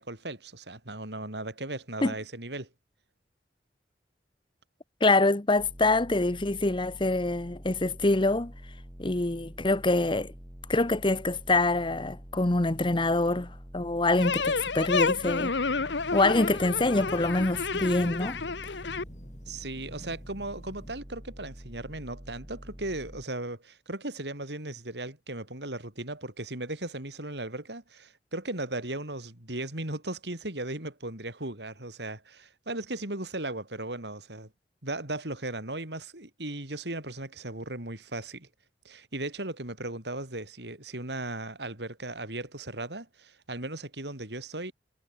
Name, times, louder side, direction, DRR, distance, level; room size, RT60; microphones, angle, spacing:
voice 1, 0.0-2.7 19.5-34.5 34.8-38.5 38.8-44.7, right 2 dB, 70° right, 4.8 m, -37 dB
voice 2, 5.0-8.5 9.0-10.3 10.7-15.5 16.1-18.4, left 2 dB, 30° left, 1.0 m, -25 dB
sound 1, 5.6-23.3, equal, 15° right, 3.4 m, -47 dB
sound 2, 14.2-19.0, left 4 dB, 80° left, 1.2 m, -30 dB
sound 3, 14.4-20.9, equal, 45° left, 3.9 m, -47 dB
head